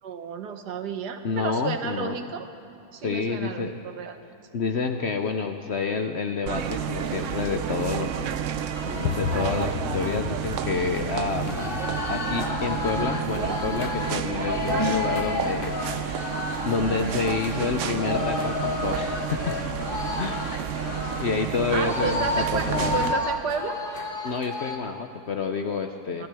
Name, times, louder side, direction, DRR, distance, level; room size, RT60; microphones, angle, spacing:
voice 1, 0.0-2.5 2.9-4.2 21.7-23.8 26.2-26.3, right 6 dB, 80° right, 7 dB, 1.6 m, -32 dB
voice 2, 1.2-2.2 3.0-3.8 4.5-8.4 8.8-11.8 12.1-19.5 20.2-20.4 21.2-23.0 24.2-26.3, left 5 dB, 60° left, 6 dB, 0.7 m, -29 dB
sound 1, 6.5-23.1, right 8 dB, 60° right, 0.9 m, -30 dB
sound 2, 8.7-24.8, left 3 dB, 40° left, 1.1 m, -32 dB
sound 3, 9.0-17.3, left 9 dB, 90° left, 1.2 m, -37 dB
26.0 x 16.0 x 3.4 m, 2.8 s
omnidirectional pair, 1.7 m